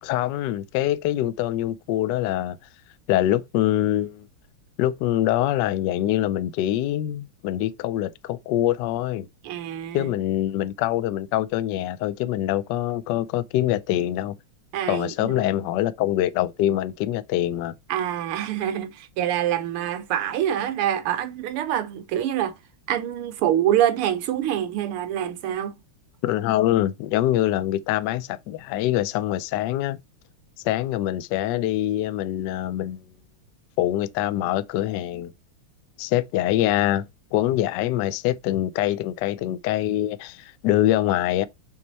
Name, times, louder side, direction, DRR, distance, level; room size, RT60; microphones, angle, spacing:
voice 1, 0.0-2.6 3.1-4.3 4.8-9.3 9.9-14.3 14.9-17.7 26.2-30.0 30.6-33.0 33.8-35.3 36.0-37.0 37.3-41.5, left 13 dB, 80° left, 1.0 m, -24 dB
voice 2, 9.4-10.1 14.7-15.4 17.9-22.6 22.9-25.8, right 11 dB, 85° right, 1.8 m, -25 dB
6.4 x 4.3 x 4.0 m
omnidirectional pair, 2.4 m